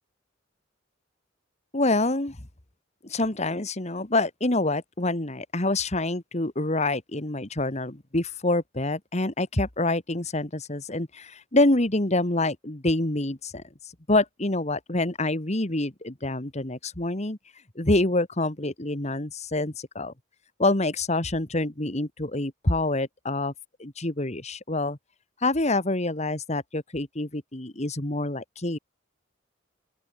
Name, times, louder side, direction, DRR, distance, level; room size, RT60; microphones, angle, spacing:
voice 1, 1.7-2.4 3.0-13.6 14.1-17.4 17.8-20.1 20.6-23.5 23.8-25.0 25.4-28.8, left 2 dB, 35° left, 2.0 m, -26 dB
open air
head